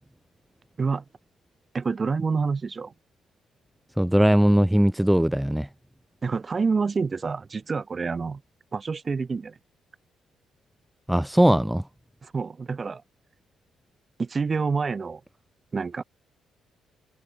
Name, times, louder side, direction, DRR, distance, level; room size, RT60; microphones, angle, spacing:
voice 1, 1.7-2.9 6.2-8.4 8.7-9.6 12.2-13.0 14.2-15.2 15.7-16.0, right 4 dB, 35° right, 1.8 m, -27 dB
voice 2, 4.0-5.7 11.1-11.8, right 1 dB, 5° right, 0.6 m, -20 dB
cardioid pair, 90°, 0 cm